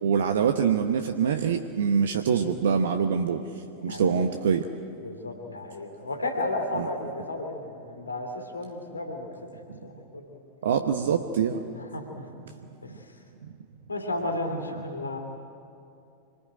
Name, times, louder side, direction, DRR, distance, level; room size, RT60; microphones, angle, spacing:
voice 1, 0.0-3.4 3.8-4.7 6.8-6.9 10.6-11.6, right 7 dB, 60° right, 7 dB, 1.0 m, -24 dB
voice 2, 5.0-9.3 9.8-10.4 11.8-12.3 12.8-13.0 13.9-15.2, left 2 dB, 80° left, 4 dB, 2.6 m, -33 dB
26.0 x 20.5 x 9.1 m, 2.7 s
figure-of-eight pair, 90°, 0 cm